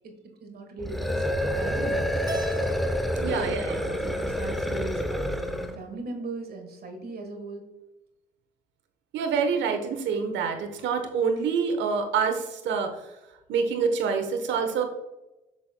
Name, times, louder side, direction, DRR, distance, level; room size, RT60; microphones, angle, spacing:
voice 1, 0.0-2.3 3.2-7.6, right 2 dB, 50° right, 5 dB, 1.4 m, -38 dB
sound 1, 0.8-5.8, equal, ahead, 0.7 m, -28 dB
Keyboard (musical), 2.3-4.6, equal, 20° right, 1.1 m, -41 dB
voice 2, 3.2-3.8 9.1-12.9 13.5-14.8, right 6 dB, 70° right, 6 dB, 1.0 m, -26 dB
8.3 x 5.8 x 2.2 m, 1.0 s
hypercardioid pair, 55°, 20 cm